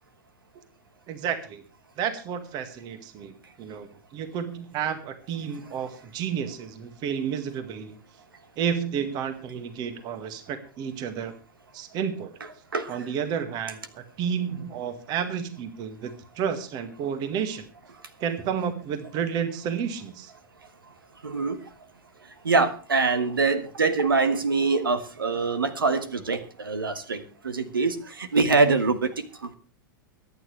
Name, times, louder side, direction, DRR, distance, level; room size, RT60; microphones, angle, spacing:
voice 1, 1.1-1.6 2.0-8.0 8.6-11.3 11.7-12.3 12.9-17.7 18.2-20.3, right 7 dB, 40° right, 9 dB, 2.0 m, -31 dB
voice 2, 21.2-21.6 22.4-29.6, right 4 dB, 80° right, 11 dB, 1.7 m, -24 dB
23.5 x 9.6 x 3.3 m, 0.36 s
figure-of-eight pair, 100°, 11 cm